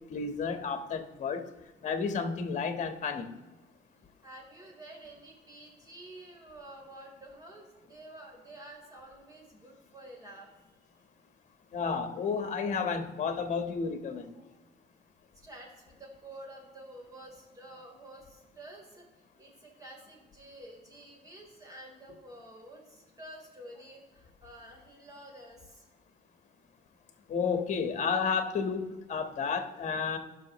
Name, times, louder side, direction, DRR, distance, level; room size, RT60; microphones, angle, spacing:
voice 1, 0.1-1.5 1.8-3.3 11.7-14.3 27.3-30.2, left 5 dB, 45° left, 1.3 m, -31 dB
voice 2, 4.2-10.7 14.3-14.6 15.3-25.9, right 1 dB, 20° right, 3.6 m, -50 dB
17.5 x 6.0 x 3.1 m
cardioid pair, 110°, 17 cm